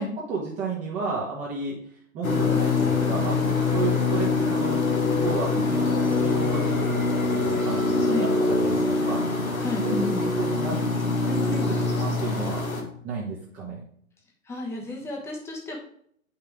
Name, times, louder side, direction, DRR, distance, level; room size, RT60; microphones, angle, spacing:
voice 1, 0.3-1.8 2.1-4.8 5.1-9.2 9.8-12.6 13.0-13.8, right 4 dB, 20° right, -5 dB, 1.4 m, -32 dB
sound 1, 2.2-12.8, left 3 dB, 80° left, 1.8 m, -24 dB
voice 2, 9.6-10.3 14.5-15.8, left 2 dB, 5° left, -1 dB, 1.3 m, -31 dB
8.2 x 5.8 x 3.5 m, 0.65 s
figure-of-eight pair, 120°, 41 cm